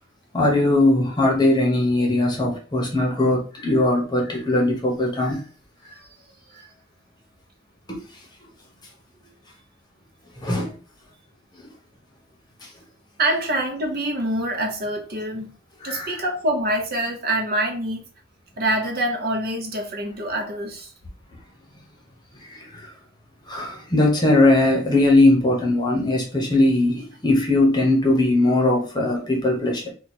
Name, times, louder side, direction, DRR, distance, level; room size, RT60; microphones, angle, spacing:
voice 1, 0.3-5.4 7.9-8.0 10.4-10.8 12.6-12.7 15.8-16.2 22.5-22.9 23.5-29.9, left 2 dB, 20° left, 0.9 m, -20 dB
voice 2, 13.2-15.5 15.8-18.0 18.6-20.9, right 1 dB, 50° right, 0.7 m, -25 dB
2.9 x 2.3 x 4.2 m
head